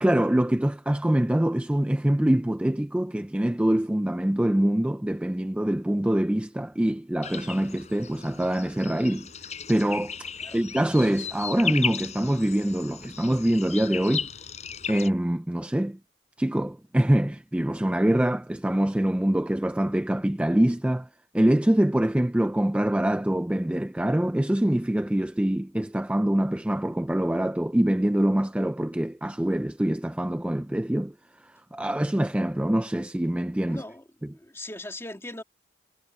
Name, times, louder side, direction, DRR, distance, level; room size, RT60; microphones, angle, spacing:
voice 1, 0.0-9.3 9.7-10.3 10.5-14.3 14.9-16.0 16.4-21.1 21.3-31.1 31.4-33.8 34.2-34.3, right 1 dB, 5° right, 0.4 m, -24 dB
sound 1, 7.2-15.1, left 6 dB, 40° left, 7.0 m, -35 dB
voice 2, 33.7-34.0 34.4-35.4, left 1 dB, 15° left, 2.3 m, -39 dB
head